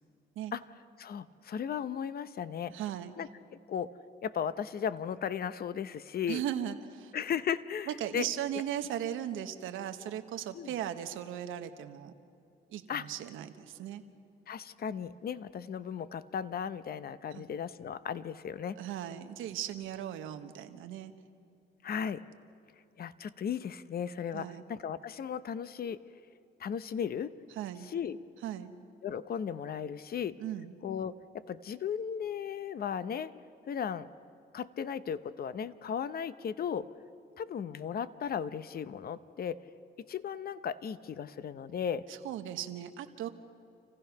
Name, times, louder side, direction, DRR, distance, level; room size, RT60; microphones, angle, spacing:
voice 1, 1.0-2.7 3.2-3.3 3.7-3.9 4.2-6.4 7.1-8.3 10.5-10.7 12.9-13.0 14.5-18.8 21.8-22.2 23.0-26.0 26.6-27.3 27.9-28.2 29.0-30.4 30.8-31.2 31.5-33.3 33.7-34.1 34.5-36.9 37.4-39.6 40.1-42.0, left 8 dB, 50° left, 14 dB, 0.8 m, -36 dB
voice 2, 2.7-3.1 6.3-7.1 7.9-12.1 12.7-14.0 17.3-17.4 18.8-21.1 24.3-24.6 27.6-27.9 28.4-28.7 30.4-30.7 42.1-43.3, right 11 dB, 90° right, 8 dB, 1.1 m, -37 dB
28.0 x 15.5 x 5.9 m, 2.5 s
cardioid pair, 90°, 20 cm